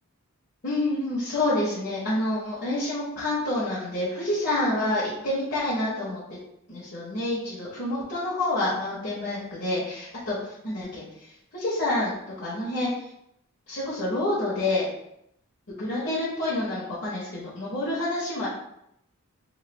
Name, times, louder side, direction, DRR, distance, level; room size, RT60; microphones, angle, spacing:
voice 1, 0.6-6.2 6.7-11.0 11.5-12.9 13.7-14.9 15.8-18.5, left 1 dB, 45° left, -9 dB, 0.9 m, -28 dB
3.0 x 2.2 x 3.2 m, 0.77 s
head